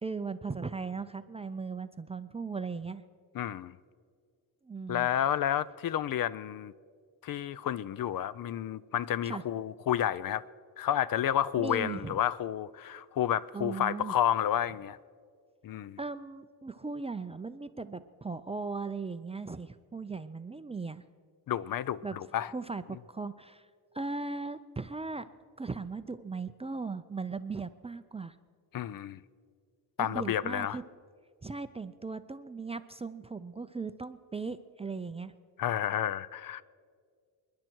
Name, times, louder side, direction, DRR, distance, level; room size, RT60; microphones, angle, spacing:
voice 1, 0.0-3.0 4.6-5.1 9.2-9.4 11.6-12.2 13.5-14.1 16.0-21.0 22.0-22.2 22.5-23.7 23.9-25.2 25.6-28.4 30.0-30.8 31.4-35.3, right 4 dB, 15° right, 0.4 m, -38 dB
voice 2, 3.3-3.7 4.9-6.7 7.2-10.4 10.8-15.0 15.6-16.0 21.5-22.5 28.7-29.2 30.0-30.8 35.6-36.6, left 10 dB, 55° left, 0.5 m, -30 dB
28.5 x 10.5 x 4.5 m
cardioid pair, 115°, 41 cm